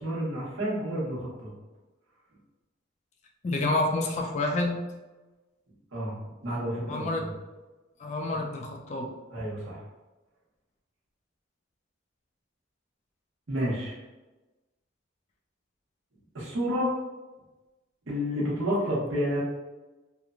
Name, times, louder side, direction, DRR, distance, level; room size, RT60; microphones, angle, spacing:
voice 1, 0.0-1.5 5.9-6.1 6.4-7.3 8.3-8.4 9.3-9.8 13.5-14.0 16.3-16.9 18.1-19.4, equal, 85° right, -5 dB, 1.0 m, -30 dB
voice 2, 3.4-4.8 6.9-7.3 8.0-9.1, left 2 dB, 35° left, 1 dB, 0.3 m, -28 dB
2.9 x 2.1 x 2.4 m, 1.1 s
head